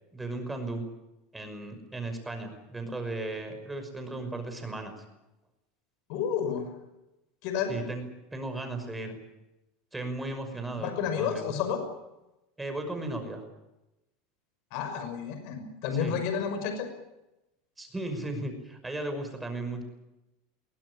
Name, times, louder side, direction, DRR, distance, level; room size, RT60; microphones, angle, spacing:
voice 1, 0.1-0.9 1.3-4.9 7.7-9.2 9.9-11.5 12.6-13.4 16.0-16.2 17.8-19.8, right 2 dB, 10° right, 6 dB, 5.8 m, -36 dB
voice 2, 6.1-6.7 7.4-7.7 10.8-11.8 14.7-16.9, left 7 dB, 60° left, 7 dB, 5.9 m, -30 dB
22.5 x 18.0 x 10.0 m, 0.96 s
supercardioid pair, 125°, 0 cm